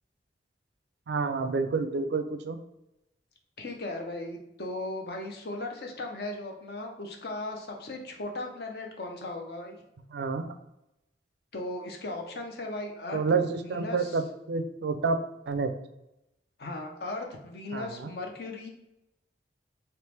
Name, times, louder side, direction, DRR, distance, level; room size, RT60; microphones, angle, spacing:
voice 1, 1.1-2.6 10.1-10.5 13.1-14.2 14.5-15.2 15.5-15.7 17.7-18.1, right 4 dB, 70° right, 8 dB, 0.4 m, -28 dB
voice 2, 3.6-9.8 11.5-13.2 13.5-14.2 16.6-18.7, left 2 dB, 60° left, 2 dB, 0.7 m, -37 dB
3.3 x 2.9 x 3.2 m, 0.88 s
head